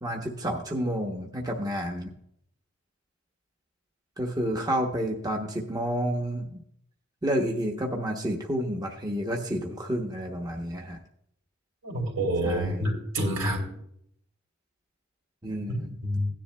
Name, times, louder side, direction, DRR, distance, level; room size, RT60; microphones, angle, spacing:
voice 1, 0.0-2.1 4.2-6.6 7.2-11.0 12.4-12.8 15.4-15.9, equal, 20° right, 1 dB, 0.8 m, -30 dB
voice 2, 11.8-13.7 16.0-16.3, equal, 80° right, 0 dB, 3.0 m, -27 dB
16.5 x 10.0 x 2.2 m, 0.72 s
head